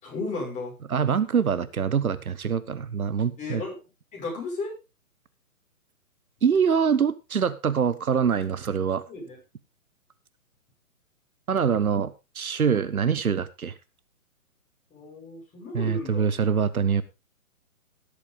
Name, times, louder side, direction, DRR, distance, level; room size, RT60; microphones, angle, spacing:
voice 1, 0.0-0.7 3.4-3.8 4.1-4.7 9.1-9.4 14.9-16.3, left 3 dB, 15° left, -2 dB, 6.2 m, -34 dB
voice 2, 0.9-3.6 6.4-9.0 11.5-13.7 15.7-17.0, right 7 dB, 80° right, 14 dB, 1.1 m, -24 dB
16.5 x 8.4 x 3.7 m, 0.27 s
figure-of-eight pair, 135°, 42 cm